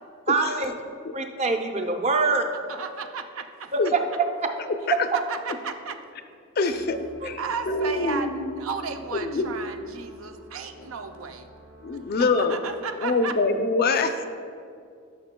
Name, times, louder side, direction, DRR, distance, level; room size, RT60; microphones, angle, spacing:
voice 1, 0.3-0.7 1.1-2.4 3.7-4.0 7.2-7.3, right 3 dB, 30° right, 4 dB, 0.6 m, -24 dB
voice 2, 2.7-3.7 4.8-6.0 6.7-6.8 7.4-11.5 12.4-13.4 13.9-14.0, right 5 dB, 85° right, 6 dB, 0.5 m, -34 dB
voice 3, 6.6-7.4 7.7-8.5 9.2-9.5 11.8-12.6 13.0-14.3, left 3 dB, 50° left, 7 dB, 0.5 m, -24 dB
sound 1, 6.7-12.4, equal, 50° right, 1.2 m, -51 dB
13.5 x 6.2 x 2.2 m, 2.3 s
head